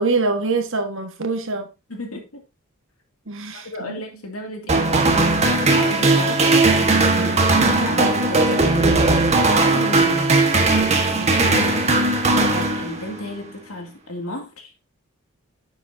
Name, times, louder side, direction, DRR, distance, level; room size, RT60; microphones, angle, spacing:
voice 1, 0.0-1.7 3.3-3.9, right 3 dB, 60° right, 1.6 m, -24 dB
voice 2, 1.9-2.4 3.5-7.6 7.8-10.8 11.2-11.9 12.5-14.7, left 1 dB, 75° left, 2.5 m, -33 dB
sound 1, 4.7-13.3, right 2 dB, 30° right, 1.4 m, -18 dB
9.8 x 7.1 x 2.8 m
head